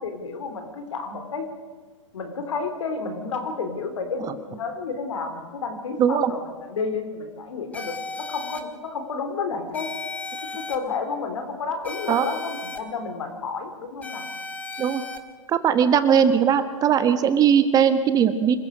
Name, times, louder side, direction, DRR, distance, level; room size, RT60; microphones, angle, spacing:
voice 1, 0.0-1.5 2.1-9.9 10.5-14.2, left 4 dB, 70° left, 7 dB, 3.8 m, -31 dB
voice 2, 6.0-6.3 12.1-12.3 14.8-15.0 15.5-18.6, right 8 dB, 20° right, 11 dB, 1.3 m, -19 dB
sound 1, 7.7-8.6 9.7-10.8 11.8-12.8 14.0-15.2, left 3 dB, 10° left, 1.8 m, -35 dB
26.5 x 15.0 x 6.6 m, 1.5 s
hypercardioid pair, 125°, 17 cm